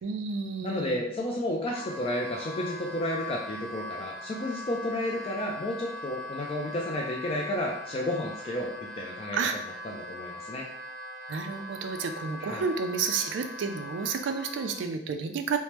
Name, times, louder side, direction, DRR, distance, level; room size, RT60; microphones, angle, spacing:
voice 1, 0.0-1.0 9.3-9.6 11.3-15.6, right 5 dB, 75° right, 7 dB, 0.3 m, -31 dB
voice 2, 0.6-9.4 9.8-10.7 12.4-12.7, left 1 dB, 30° left, -1 dB, 0.3 m, -32 dB
Wind instrument woodwind instrument, 1.6-14.8, left 2 dB, 5° left, 0.7 m, -41 dB
3.2 x 2.1 x 2.9 m, 0.74 s
head